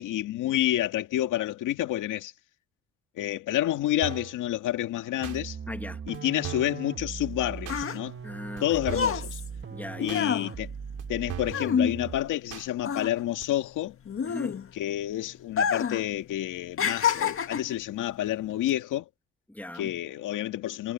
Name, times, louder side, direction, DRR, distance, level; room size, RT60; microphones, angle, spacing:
voice 1, 0.0-2.3 3.2-5.6 6.1-8.1 8.6-9.4 10.0-10.7 11.1-14.0 14.7-19.1 19.7-20.9, left 13 dB, 85° left, 2.2 m, -29 dB
sound 1, 4.0-4.4 5.2-5.4 6.1-6.2 6.4-6.8 7.6-7.8 8.6-8.7 8.9-9.2 10.1-10.2 11.0-11.1 11.3-11.6 12.5-12.7 13.4-13.5, right 12 dB, 80° right, 3.5 m, -38 dB
sound 2, 5.2-12.4, right 6 dB, 40° right, 1.7 m, -39 dB
voice 2, 5.7-6.0 8.2-8.9 9.7-10.3 14.2-14.6 19.5-19.9, left 1 dB, 5° left, 2.3 m, -39 dB
sound 3, 7.2-12.5 12.8-14.9 15.5-16.1 16.3-17.8 18.5-18.7, left 7 dB, 45° left, 1.8 m, -28 dB
cardioid pair, 90°, 30 cm